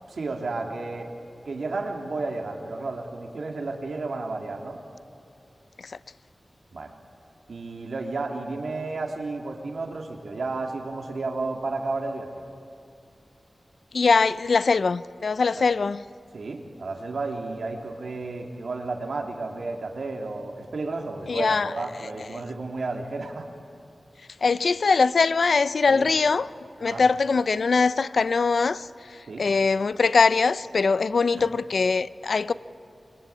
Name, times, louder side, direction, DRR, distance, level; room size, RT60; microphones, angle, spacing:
voice 1, 0.1-1.1 1.4-4.8 6.7-6.9 7.5-12.3 15.5-15.6 16.3-23.5 25.9-26.1 26.8-27.0 29.3-29.4 31.4-31.5, right 3 dB, 85° right, 3.0 m, -32 dB
voice 2, 13.9-16.0 21.3-21.8 24.4-26.5 26.8-32.5, left 4 dB, 75° left, 0.6 m, -22 dB
26.0 x 24.0 x 8.5 m
wide cardioid pair, 105°, 0 cm